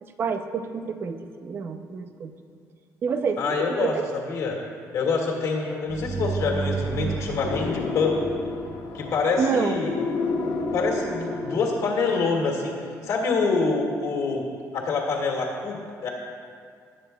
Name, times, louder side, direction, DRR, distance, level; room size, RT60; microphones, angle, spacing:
voice 1, 0.0-2.3 3.0-4.1 9.4-9.9, right 5 dB, 40° right, 8 dB, 0.6 m, -28 dB
voice 2, 3.4-4.0 4.3-4.6 4.9-8.2 8.9-9.9 10.7-12.7 13.0-14.4 14.7-16.1, left 4 dB, 60° left, -1 dB, 1.9 m, -26 dB
sound 1, 5.9-9.5, right 4 dB, 20° right, 0.9 m, -32 dB
sound 2, 7.4-12.1, left 3 dB, 85° left, 0.9 m, -30 dB
19.0 x 9.2 x 2.3 m, 2.1 s
cardioid pair, 180°, 6 cm